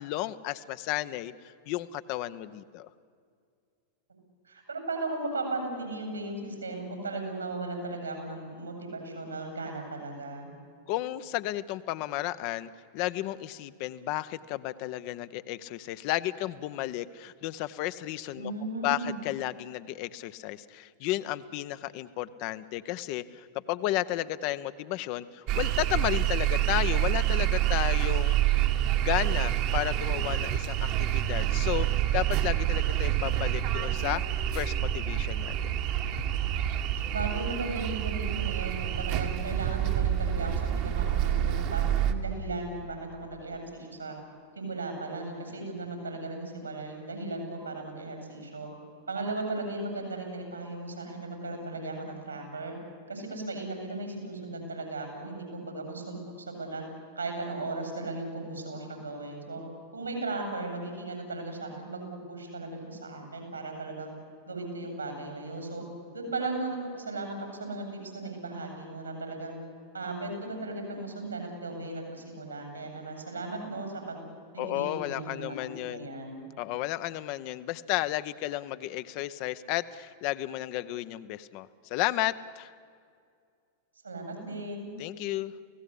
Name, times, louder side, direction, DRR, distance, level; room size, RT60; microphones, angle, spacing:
voice 1, 0.0-2.9 10.9-18.5 18.8-28.4 29.0-31.9 32.1-34.2 34.5-35.7 74.6-76.1 76.6-82.7 85.0-85.5, left 15 dB, 45° left, 12 dB, 0.8 m, -33 dB
voice 2, 4.4-10.5 18.4-19.2 37.0-44.2 44.5-48.7 49.1-52.7 53.1-56.8 57.2-59.6 59.9-64.1 64.5-65.8 66.1-69.5 69.9-74.2 74.5-75.6 75.9-76.5 84.0-84.9, right 2 dB, 80° right, 4 dB, 8.0 m, -36 dB
sound 1, 25.5-42.1, right 12 dB, 45° right, 1.6 m, -27 dB
29.5 x 17.0 x 8.5 m, 2.2 s
figure-of-eight pair, 90°, 0 cm